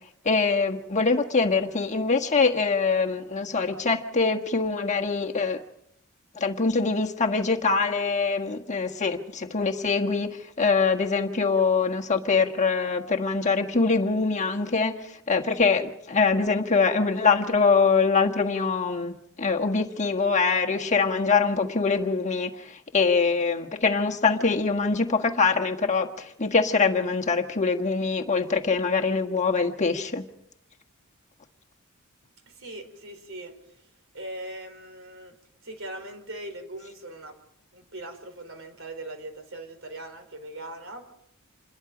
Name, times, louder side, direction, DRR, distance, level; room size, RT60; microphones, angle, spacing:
voice 1, 0.2-5.6 6.3-10.3 10.6-30.2, left 4 dB, 35° left, 3 dB, 1.5 m, -24 dB
voice 2, 32.5-33.9 34.1-35.4 35.6-37.4 37.7-41.0, right 1 dB, 65° right, 7 dB, 4.3 m, -40 dB
28.0 x 21.0 x 5.1 m, 0.74 s
head